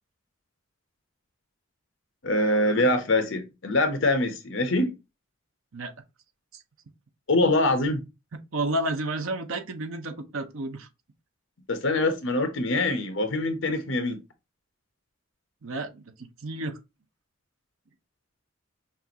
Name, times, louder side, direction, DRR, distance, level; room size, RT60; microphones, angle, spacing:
voice 1, 2.2-4.9 7.3-8.0 11.7-14.2, left 2 dB, 65° left, 1.0 m, -24 dB
voice 2, 8.5-10.9 15.6-16.8, right 1 dB, 80° right, 0.8 m, -31 dB
5.8 x 2.6 x 2.9 m
head